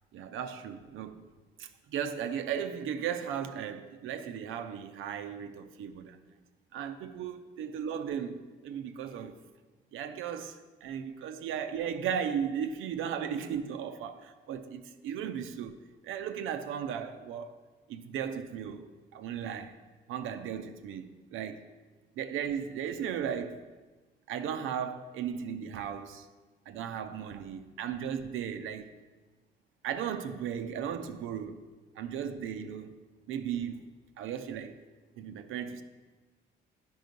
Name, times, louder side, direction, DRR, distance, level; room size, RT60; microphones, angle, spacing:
voice 1, 0.1-1.2 1.6-6.2 6.7-9.4 9.9-15.8 16.0-17.5 17.9-19.7 20.1-21.6 22.2-23.6 24.3-26.3 26.7-28.9 29.8-31.7 32.0-32.9 33.3-34.7 35.2-35.8, right 8 dB, 90° right, 0.6 m, -36 dB
9.6 x 5.5 x 5.2 m
cardioid pair, 90°, 20 cm